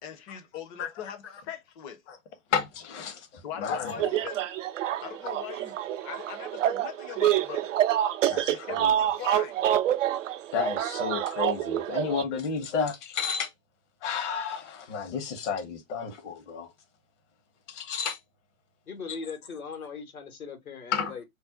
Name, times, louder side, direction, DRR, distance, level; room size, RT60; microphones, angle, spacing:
voice 1, 0.0-2.0 3.4-4.4 5.0-7.7 8.5-9.7, left 8 dB, 25° left, 0.6 m, -40 dB
voice 2, 2.5-3.3 3.6-4.1 8.3-8.9 10.5-13.5 14.0-16.7 17.7-18.2 20.9-21.1, left 6 dB, 55° left, 1.0 m, -31 dB
sound 1, 3.9-12.2, right 12 dB, 65° right, 0.5 m, -27 dB
voice 3, 18.9-21.2, left 5 dB, 80° left, 1.2 m, -39 dB
2.5 x 2.1 x 3.5 m
figure-of-eight pair, 110°, 42 cm